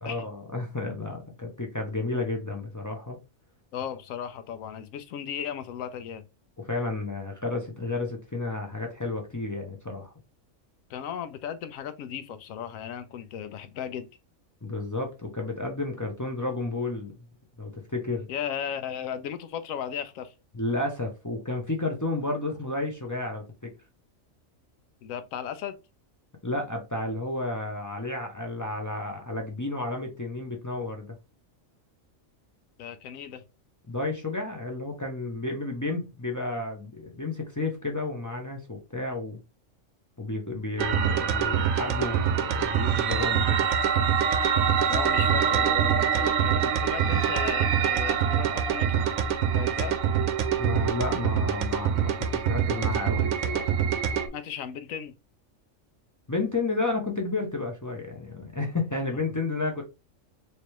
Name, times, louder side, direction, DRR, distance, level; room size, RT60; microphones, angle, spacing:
voice 1, 0.0-3.2 6.6-10.1 14.6-17.1 17.6-18.3 20.5-23.7 26.4-31.2 33.9-39.4 40.2-43.7 50.6-53.7 56.3-59.8, left 2 dB, 25° left, 0.4 m, -31 dB
voice 2, 3.7-6.2 10.9-14.1 18.3-20.3 25.0-25.8 32.8-33.4 44.9-49.1 49.5-50.0 54.3-55.1, left 8 dB, 80° left, 1.0 m, -36 dB
sound 1, 40.8-54.3, right 8 dB, 85° right, 1.0 m, -25 dB
3.3 x 3.0 x 2.9 m
omnidirectional pair, 1.4 m